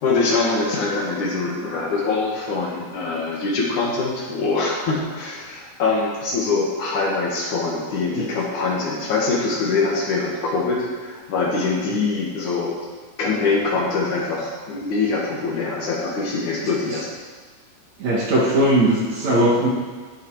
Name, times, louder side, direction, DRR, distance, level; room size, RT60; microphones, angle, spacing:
voice 1, 0.0-12.7 13.2-17.1, left 3 dB, 60° left, -3 dB, 2.9 m, -23 dB
voice 2, 18.0-19.7, right 1 dB, 55° right, -4 dB, 2.7 m, -19 dB
17.0 x 7.3 x 4.8 m, 1.5 s
omnidirectional pair, 4.4 m